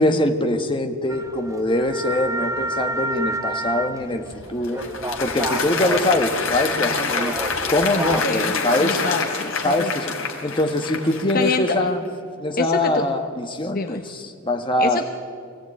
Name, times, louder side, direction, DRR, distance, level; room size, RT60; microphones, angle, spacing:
voice 1, 0.0-4.8 5.2-7.4 7.7-9.0 9.6-10.1 10.4-12.0 12.4-15.0, left 1 dB, 20° left, 5 dB, 1.5 m, -23 dB
sound 1, 1.1-8.2, right 2 dB, 15° right, 1.1 m, -30 dB
Applause, 4.3-11.9, left 4 dB, 60° left, 2.9 m, -27 dB
voice 2, 8.8-9.9 11.3-11.6 12.6-13.0 13.7-14.0 14.8-15.0, left 3 dB, 40° left, 6 dB, 1.0 m, -26 dB
25.0 x 16.5 x 9.0 m, 2.2 s
head